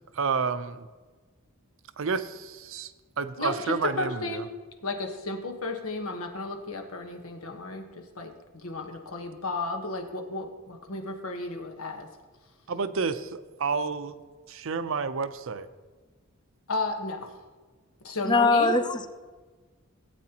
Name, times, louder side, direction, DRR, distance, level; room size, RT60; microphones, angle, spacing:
voice 1, 0.2-0.9 2.0-2.9 3.2-4.4 12.7-14.2 14.5-15.7, right 5 dB, 65° right, 11 dB, 0.6 m, -30 dB
voice 2, 3.4-4.5 4.8-12.1 16.7-17.3 18.0-18.7, left 3 dB, 85° left, 5 dB, 1.2 m, -33 dB
voice 3, 18.2-19.1, left 3 dB, 20° left, 9 dB, 0.5 m, -22 dB
16.0 x 8.4 x 2.9 m, 1.4 s
head